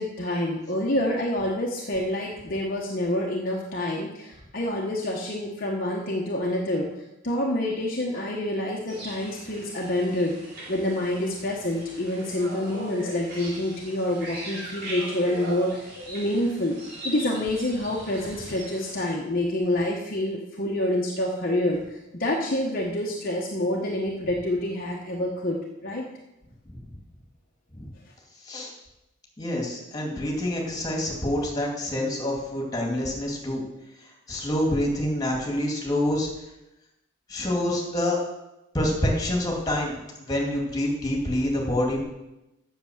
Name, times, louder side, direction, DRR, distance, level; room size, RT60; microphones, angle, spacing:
voice 1, 0.0-6.9 7.2-10.4 10.7-16.8 17.0-26.0, left 1 dB, 45° left, -2 dB, 1.1 m, -27 dB
sound 1, 8.9-19.1, right 1 dB, 50° right, 3.7 m, -40 dB
voice 2, 28.4-28.7 29.4-33.6 34.3-36.3 37.3-38.2 38.7-42.0, left 1 dB, 20° left, -1 dB, 2.4 m, -27 dB
8.0 x 6.8 x 7.3 m, 0.95 s
head